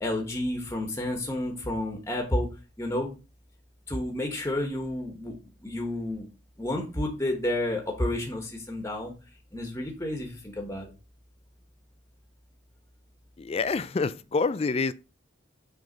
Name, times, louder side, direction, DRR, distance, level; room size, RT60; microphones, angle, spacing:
voice 1, 0.0-2.5 2.8-3.1 3.9-5.3 5.6-6.3 6.6-9.1 9.5-10.9, left 1 dB, 15° left, 1.2 m, -30 dB
voice 2, 13.4-14.9, left 4 dB, 30° left, 0.3 m, -27 dB
6.3 x 3.5 x 5.1 m
head